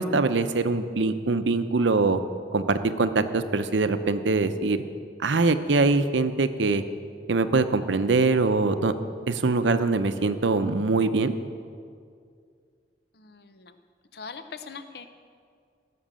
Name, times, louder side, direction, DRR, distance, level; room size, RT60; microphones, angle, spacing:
voice 1, 0.0-2.2 2.5-4.8 5.2-6.8 7.3-8.9 9.3-11.3, right 3 dB, 80° right, 10 dB, 0.7 m, -23 dB
voice 2, 13.1-13.7 14.1-15.1, left 5 dB, 60° left, 9 dB, 0.7 m, -41 dB
16.5 x 6.1 x 7.5 m, 2.2 s
head